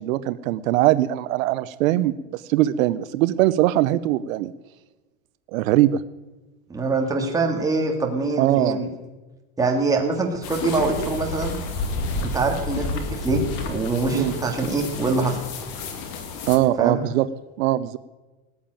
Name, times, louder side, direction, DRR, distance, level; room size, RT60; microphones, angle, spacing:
voice 1, 0.0-4.5 5.5-6.0 8.4-8.8 14.1-14.3 16.5-17.3 17.6-18.0, right 14 dB, 70° right, 14 dB, 0.7 m, -21 dB
voice 2, 6.7-8.9 9.6-11.6 12.2-15.4 16.8-17.0, right 3 dB, 10° right, 1 dB, 1.8 m, -24 dB
sound 1, 10.4-16.6, left 3 dB, 40° left, 2.1 m, -30 dB
19.0 x 7.2 x 9.0 m, 1.2 s
supercardioid pair, 170°, 42 cm